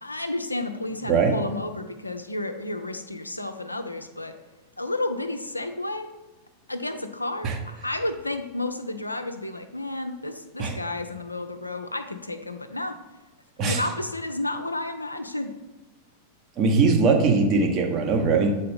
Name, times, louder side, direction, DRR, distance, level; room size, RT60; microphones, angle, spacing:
voice 1, 0.0-4.4 4.8-6.1 6.7-12.9 13.6-15.5, left 2 dB, 85° left, 7 dB, 0.4 m, -31 dB
voice 2, 16.6-18.5, right 4 dB, 35° right, 3 dB, 1.0 m, -21 dB
7.6 x 4.1 x 3.5 m, 1.1 s
figure-of-eight pair, 90°, 0 cm